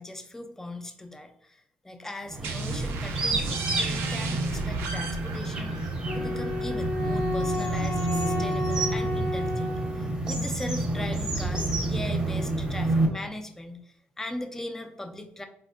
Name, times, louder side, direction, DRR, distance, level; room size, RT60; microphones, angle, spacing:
voice 1, 0.0-15.5, left 1 dB, 10° left, 6 dB, 0.4 m, -39 dB
sound 1, 2.3-13.1, right 2 dB, 20° right, 0.7 m, -29 dB
sound 2, 2.4-7.9, right 4 dB, 80° right, 0.4 m, -36 dB
Wind instrument woodwind instrument, 6.0-10.3, left 1 dB, 80° left, 0.6 m, -32 dB
4.1 x 2.0 x 2.4 m, 0.77 s
cardioid pair, 90°, 4 cm